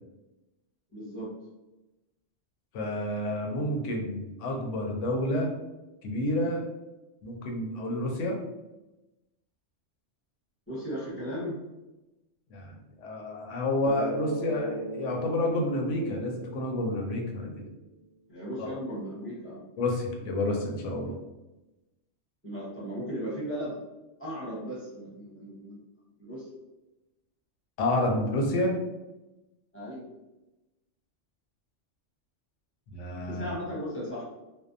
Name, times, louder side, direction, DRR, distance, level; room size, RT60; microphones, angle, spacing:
voice 1, 0.9-1.3 10.7-11.6 18.3-19.6 22.4-23.8 24.2-25.8 26.2-26.5 29.7-30.0 33.2-34.2, equal, 10° left, -8 dB, 0.8 m, -36 dB
voice 2, 2.7-5.5 6.0-6.6 7.2-8.4 12.5-17.6 18.6-18.7 19.8-21.1 27.8-28.8 32.9-33.5, left 1 dB, 80° left, 1 dB, 0.9 m, -29 dB
Bass guitar, 13.9-17.9, right 2 dB, 55° right, 0.5 m, -38 dB
2.6 x 2.0 x 2.5 m, 1.0 s
omnidirectional pair, 1.2 m